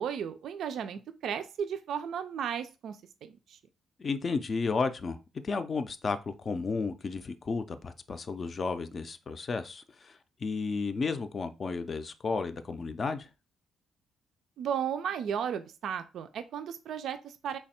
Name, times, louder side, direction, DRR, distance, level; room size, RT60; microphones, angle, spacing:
voice 1, 0.0-3.6 14.6-17.6, right 8 dB, 70° right, 0.3 m, -35 dB
voice 2, 4.0-5.2 5.4-13.3, left 4 dB, 40° left, 0.4 m, -33 dB
3.3 x 2.2 x 4.2 m
cardioid pair, 90°, 0 cm